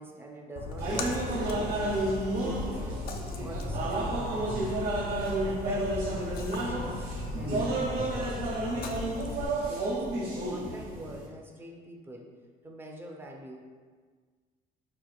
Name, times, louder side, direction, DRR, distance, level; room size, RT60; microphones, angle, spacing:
voice 1, 0.0-2.0 2.4-3.0 3.4-4.8 5.4-9.1 9.7-12.4 12.6-13.6, right 1 dB, 15° right, 1 dB, 0.5 m, -45 dB
Splash splatter, 0.6-9.5, left 3 dB, 65° left, 0.4 m, -37 dB
sound 1, 0.8-11.3, right 2 dB, 70° right, 1.0 m, -31 dB
sound 2, 4.5-9.8, left 1 dB, 80° left, 0.8 m, -49 dB
4.1 x 2.9 x 2.3 m, 1.5 s
cardioid pair, 110°, 17 cm